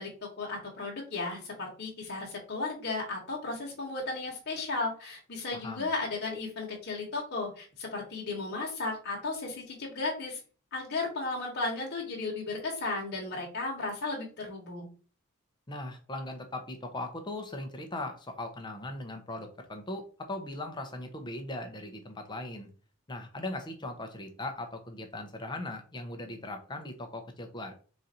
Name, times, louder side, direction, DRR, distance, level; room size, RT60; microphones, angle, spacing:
voice 1, 0.0-10.4 10.7-14.9, left 3 dB, 50° left, -2 dB, 1.1 m, -35 dB
voice 2, 5.5-5.9 15.7-22.7 23.1-27.7, left 2 dB, 20° left, 5 dB, 0.6 m, -39 dB
4.0 x 2.5 x 4.2 m, 0.39 s
head